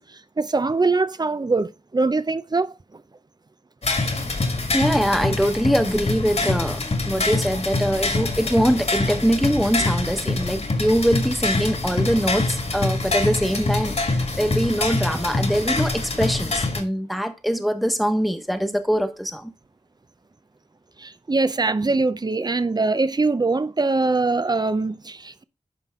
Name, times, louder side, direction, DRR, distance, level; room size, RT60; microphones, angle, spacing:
voice 1, 0.0-3.0 21.0-25.4, right 3 dB, 30° right, 0.6 m, -23 dB
sound 1, 3.8-16.8, left 2 dB, 55° left, 1.9 m, -25 dB
voice 2, 4.7-19.5, equal, ahead, 1.3 m, -23 dB
10.0 x 5.8 x 3.7 m
wide cardioid pair, 85°, 13 cm